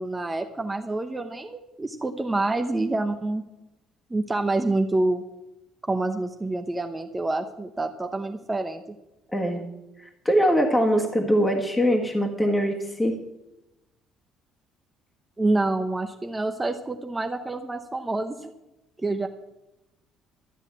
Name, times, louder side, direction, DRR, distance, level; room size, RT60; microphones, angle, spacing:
voice 1, 0.0-3.4 4.1-5.2 5.8-8.8 15.4-18.5 19.0-19.3, right 2 dB, 15° right, 5 dB, 0.8 m, -27 dB
voice 2, 9.3-9.6 10.0-13.2, equal, 10° left, 2 dB, 1.6 m, -22 dB
13.0 x 8.1 x 8.2 m, 0.93 s
cardioid pair, 140°, 0 cm